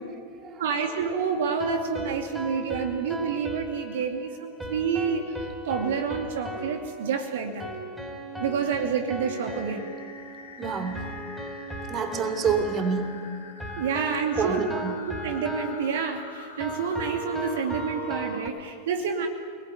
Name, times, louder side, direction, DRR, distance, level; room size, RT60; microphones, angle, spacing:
voice 1, 0.0-0.6 10.6-11.1 11.9-13.3 14.4-15.0, right 5 dB, 30° right, 8 dB, 2.9 m, -28 dB
voice 2, 0.6-7.7 8.4-9.9 13.8-14.6 15.2-19.3, right 6 dB, 55° right, 4 dB, 2.5 m, -28 dB
sound 1, 0.8-18.5, right 1 dB, 5° right, 5.1 m, -37 dB
sound 2, 9.3-18.5, left 5 dB, 70° left, 3.3 m, -45 dB
29.0 x 20.0 x 9.5 m, 2.1 s
figure-of-eight pair, 90°, 0 cm